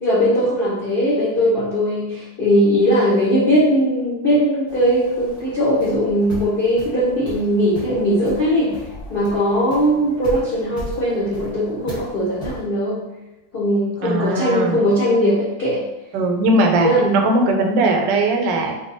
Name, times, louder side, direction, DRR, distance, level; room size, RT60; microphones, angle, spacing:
voice 1, 0.0-8.8 9.1-13.1 13.5-15.8 16.8-17.2, equal, 80° left, -7 dB, 0.5 m, -19 dB
sound 1, 4.7-12.6, left 1 dB, 15° left, 0.8 m, -37 dB
voice 2, 14.0-14.8 16.1-18.7, right 2 dB, 80° right, 3 dB, 1.3 m, -19 dB
3.2 x 2.1 x 3.8 m, 0.98 s
omnidirectional pair, 2.0 m